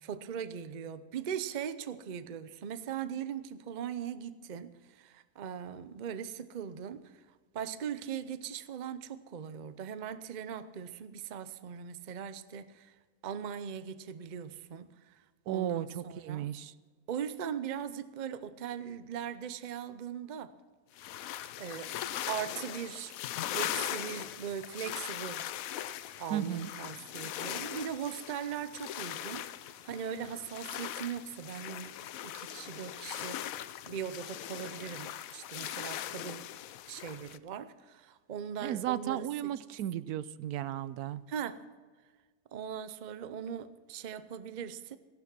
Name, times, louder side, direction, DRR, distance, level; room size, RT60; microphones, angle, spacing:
voice 1, 0.0-7.2 7.5-12.9 13.2-16.5 17.1-20.5 21.6-23.1 23.5-25.5 26.2-32.0 32.2-36.5 36.9-39.5 41.3-41.6 42.5-45.0, right 8 dB, 45° right, 0.6 m, -40 dB
voice 2, 15.5-16.7 26.3-26.7 38.6-41.2, right 12 dB, 80° right, 1.1 m, -34 dB
sound 1, 21.0-37.4, left 12 dB, 70° left, 1.0 m, -40 dB
15.5 x 11.5 x 6.0 m
omnidirectional pair, 1.6 m